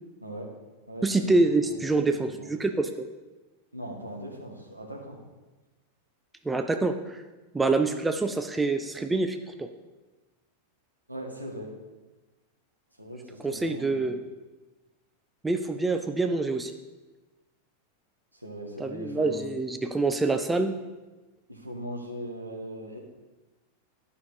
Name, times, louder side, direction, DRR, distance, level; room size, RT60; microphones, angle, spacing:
voice 1, 0.2-0.5 0.9-2.5 3.7-5.2 11.1-11.7 13.0-14.2 18.3-19.6 21.5-23.0, equal, 85° right, 0 dB, 1.6 m, -39 dB
voice 2, 1.0-3.1 6.4-7.2 7.5-9.7 13.4-14.2 15.4-16.7 18.8-20.7, right 3 dB, 10° right, 7 dB, 0.5 m, -26 dB
11.0 x 5.7 x 5.0 m, 1.2 s
figure-of-eight pair, 90°, 0 cm